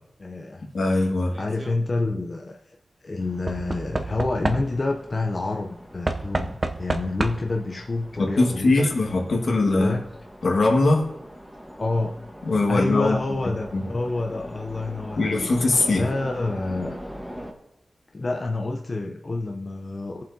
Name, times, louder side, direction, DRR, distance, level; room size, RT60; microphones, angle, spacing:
voice 1, 0.2-0.7 1.4-2.8 3.0-8.9 9.5-10.0 11.8-12.2 12.7-15.5 15.9-17.0 18.1-20.2, left 2 dB, 40° left, 3 dB, 0.6 m, -28 dB
voice 2, 0.7-1.3 8.2-10.0 10.4-11.0 12.4-13.2 13.7-13.8 15.2-16.0, left 2 dB, 75° left, 0 dB, 1.7 m, -21 dB
Knock / Wood, 1.3-1.8 3.5-5.0 6.1-7.6 8.7-8.8 9.0-9.1, right 2 dB, 35° right, 0.6 m, -29 dB
sound 1, 3.2-17.5, equal, ahead, 1.3 m, -42 dB
20.0 x 7.4 x 2.7 m, 0.84 s
wide cardioid pair, 105°, 0 cm